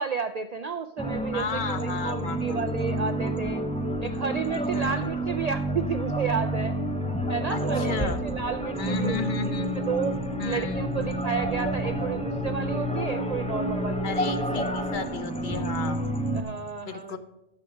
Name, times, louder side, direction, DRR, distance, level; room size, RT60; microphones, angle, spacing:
voice 1, 0.0-3.6 4.0-6.7 7.3-9.2 9.7-10.1 10.4-14.4 16.3-17.2, right 6 dB, 90° right, 10 dB, 0.3 m, -32 dB
sound 1, 1.0-16.4, right 1 dB, 5° left, 0.7 m, -29 dB
voice 2, 1.3-2.8 4.0-4.3 4.7-5.1 7.5-8.2 8.8-9.8 10.4-11.0 14.0-16.1 16.8-17.2, left 4 dB, 50° left, 10 dB, 0.8 m, -34 dB
13.5 x 5.5 x 5.1 m, 0.96 s
omnidirectional pair, 1.3 m